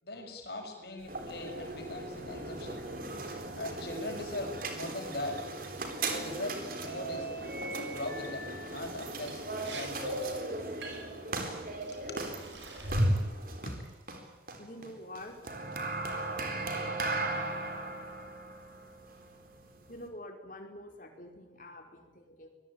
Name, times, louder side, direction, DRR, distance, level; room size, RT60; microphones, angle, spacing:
voice 1, 0.0-2.8 3.5-5.5 6.1-7.3 7.8-10.2 11.5-12.3, left 2 dB, 60° left, 2 dB, 6.6 m, -40 dB
sound 1, 1.0-20.1, right 2 dB, 50° right, 3.9 m, -36 dB
Liquid, 9.3-9.4 9.6-9.9 10.2-10.4 10.8-11.2 11.8-12.0 12.4-13.3 13.7-14.1, right 4 dB, 80° right, 5.8 m, -47 dB
voice 2, 14.6-15.4 19.9-22.5, left 1 dB, 45° left, 3 dB, 4.8 m, -46 dB
25.0 x 21.0 x 8.9 m, 1.0 s
head